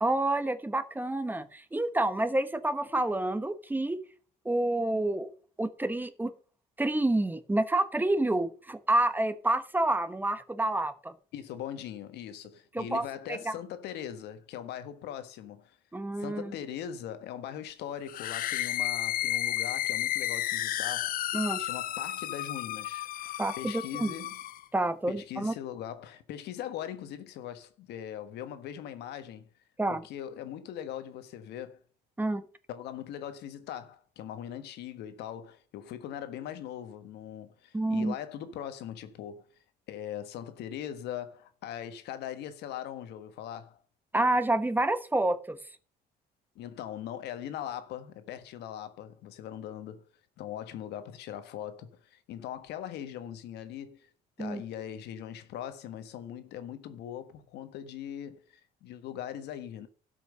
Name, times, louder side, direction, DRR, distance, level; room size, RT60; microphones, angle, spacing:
voice 1, 0.0-4.0 4.4-5.3 5.6-6.3 6.8-11.1 12.7-13.5 15.9-16.5 21.3-21.6 23.4-24.1 24.7-25.5 29.8-30.0 32.2-32.4 37.7-38.1 44.1-45.6 54.4-54.6, right 2 dB, 10° right, 1.1 m, -28 dB
voice 2, 11.3-15.8 16.2-21.2 21.6-23.1 23.6-24.4 25.1-29.5 29.9-31.8 32.7-39.4 39.9-43.8 46.5-50.0 50.4-54.1 54.4-59.9, left 10 dB, 80° left, 1.4 m, -40 dB
sound 1, 18.1-24.6, left 13 dB, 55° left, 0.5 m, -32 dB
12.0 x 5.8 x 6.6 m
cardioid pair, 110°, 17 cm